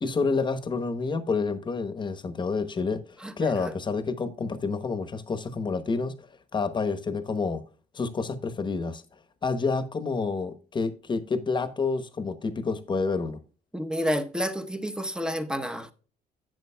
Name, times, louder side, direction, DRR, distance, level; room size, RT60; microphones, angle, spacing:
voice 1, 0.0-3.0 3.4-6.3 6.5-7.6 7.9-9.0 9.4-13.4, left 4 dB, 25° left, 1.0 m, -28 dB
voice 2, 3.2-3.7 13.7-15.9, equal, 5° right, 0.8 m, -30 dB
11.0 x 8.1 x 2.2 m
cardioid pair, 110°, 17 cm